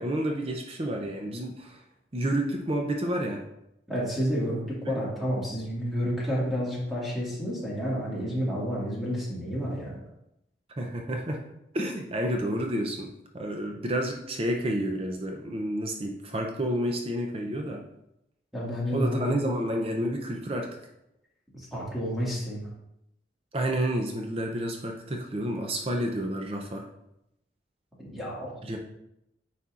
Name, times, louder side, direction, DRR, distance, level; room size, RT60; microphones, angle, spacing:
voice 1, 0.0-1.8 2.1-3.4 4.8-5.0 10.8-11.4 11.7-13.1 13.3-17.8 18.9-20.7 23.5-26.9 28.6-28.8, right 1 dB, 30° right, 2 dB, 0.5 m, -30 dB
voice 2, 3.9-10.0 18.5-19.3 21.5-22.7 28.0-28.5, equal, ahead, -7 dB, 1.9 m, -30 dB
9.4 x 4.2 x 2.4 m, 0.83 s
head